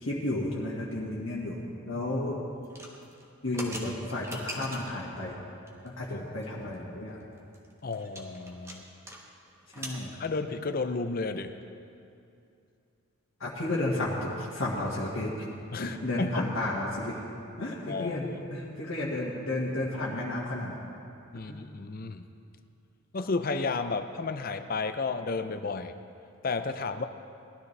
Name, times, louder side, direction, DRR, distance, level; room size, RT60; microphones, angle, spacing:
voice 1, 0.0-2.4 3.4-5.4 5.8-7.2 9.8-10.1 13.4-15.3 15.8-17.2 17.6-20.8 21.5-21.6, left 1 dB, 70° left, -6 dB, 1.7 m, -32 dB
sound 1, 2.6-5.0 5.7-6.0 6.4-6.5 6.7-6.8 7.2-9.2 9.5-10.0, right 1 dB, 15° right, 1.2 m, -42 dB
voice 2, 7.8-8.9 10.2-11.6 15.7-16.5 17.9-18.2 21.3-22.3 23.1-25.9 26.4-27.1, left 4 dB, 45° left, 9 dB, 0.5 m, -32 dB
19.5 x 12.5 x 3.3 m, 2.5 s
head